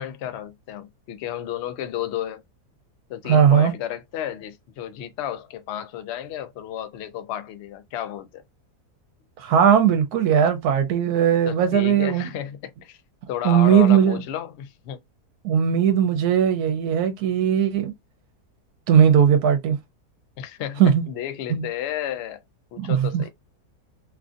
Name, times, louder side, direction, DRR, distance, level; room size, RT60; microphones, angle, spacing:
voice 1, 0.0-2.4 3.1-8.4 11.5-13.0 13.3-15.0 20.4-20.8 21.1-22.4 22.7-23.3, left 11 dB, 80° left, 0.5 m, -32 dB
voice 2, 3.3-3.7 9.4-12.3 13.4-14.2 15.4-17.9 18.9-19.8 20.8-21.0 21.5-21.7 22.8-23.2, right 8 dB, 75° right, 1.1 m, -18 dB
3.1 x 2.4 x 2.5 m
omnidirectional pair, 1.7 m